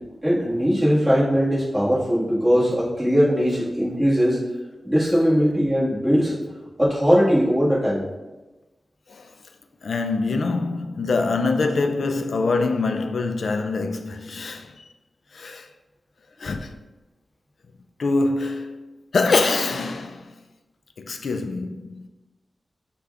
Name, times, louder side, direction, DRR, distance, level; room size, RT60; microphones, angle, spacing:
voice 1, 0.2-4.5 4.8-6.4 6.8-8.0, equal, 5° right, 1.5 m, -20 dB
voice 2, 9.8-14.8 15.3-15.7 16.4-16.7 18.0-20.3 21.0-22.1, left 3 dB, 75° left, 0.3 m, -24 dB
6.5 x 2.3 x 3.5 m
wide cardioid pair, 125°, 0 cm